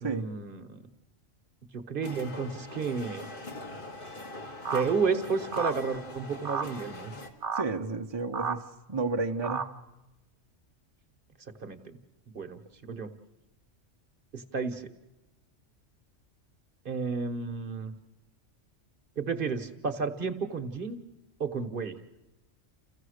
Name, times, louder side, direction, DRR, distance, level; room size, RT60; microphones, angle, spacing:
voice 1, 0.0-0.8 1.7-3.3 4.7-7.1 11.6-12.0 12.3-13.1 14.3-14.9 16.8-17.9 19.2-21.0 21.4-22.0, right 5 dB, 45° right, 1.1 m, -32 dB
sound 1, 2.0-7.3, left 2 dB, 45° left, 1.9 m, -42 dB
sound 2, 4.6-4.8 5.5-5.8 6.4-6.7 7.4-7.6 8.3-8.6 9.4-9.7, right 6 dB, 70° right, 1.3 m, -31 dB
voice 2, 7.5-8.6 8.9-9.7, right 3 dB, 25° right, 0.7 m, -31 dB
29.0 x 15.0 x 6.5 m
omnidirectional pair, 1.3 m